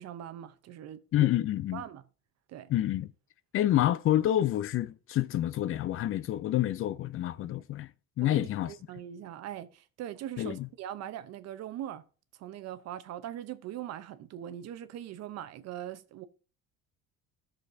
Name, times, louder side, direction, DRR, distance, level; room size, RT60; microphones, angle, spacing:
voice 1, 0.0-1.3 1.7-2.0 2.5-2.7 8.2-12.0 12.4-16.2, right 11 dB, 55° right, 0.8 m, -41 dB
voice 2, 1.1-1.8 2.7-3.1 3.5-7.9 8.2-8.7 10.4-10.7, left 13 dB, 45° left, 0.5 m, -28 dB
14.5 x 6.5 x 2.7 m
cardioid pair, 120°, 30 cm